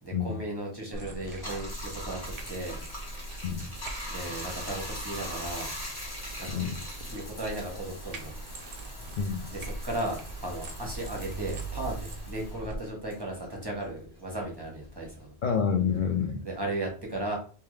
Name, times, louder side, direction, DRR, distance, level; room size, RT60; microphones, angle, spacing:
voice 1, 0.0-2.2 2.5-2.8 4.1-5.7 6.4-6.6 7.1-8.3 8.6-8.8 9.5-15.3 16.4-17.4, right 1 dB, 20° right, -2 dB, 1.1 m, -36 dB
sound 1, 0.9-12.8, right 3 dB, 45° right, 0.5 m, -41 dB
Bathtub (filling or washing), 1.2-14.0 14.4-16.2, left 1 dB, 20° left, 0.9 m, -42 dB
voice 2, 9.2-9.5 15.4-16.4, left 6 dB, 60° left, 3 dB, 0.5 m, -28 dB
3.5 x 2.9 x 3.1 m, 0.39 s
omnidirectional pair, 1.2 m